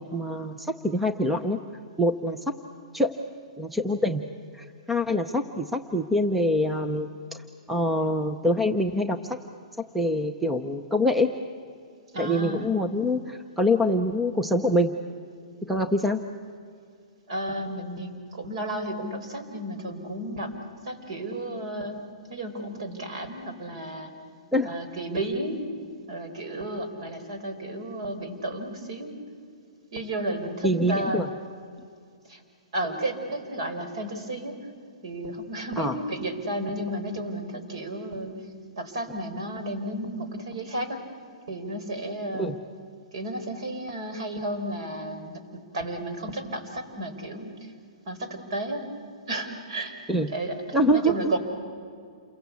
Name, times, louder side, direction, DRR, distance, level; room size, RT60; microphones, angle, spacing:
voice 1, 0.0-1.6 2.0-2.6 2.9-3.1 3.6-4.2 4.6-7.1 7.7-9.2 9.9-11.3 12.2-14.9 15.7-16.2 24.5-24.7 30.6-31.3 35.8-35.9 42.3-42.6 50.1-50.3 50.7-51.1, left 1 dB, ahead, 7 dB, 0.6 m, -25 dB
voice 2, 12.1-12.7 17.3-20.5 20.8-24.1 24.7-25.6 26.1-29.1 29.9-31.2 32.3-32.4 32.7-34.5 35.0-38.3 38.8-41.0 41.5-42.5 43.1-47.7 48.1-48.8 49.3-49.9 50.3-50.6 50.9-51.4, right 1 dB, 55° right, 7 dB, 4.4 m, -33 dB
28.5 x 22.5 x 8.3 m, 2.2 s
hypercardioid pair, 175°, 4 cm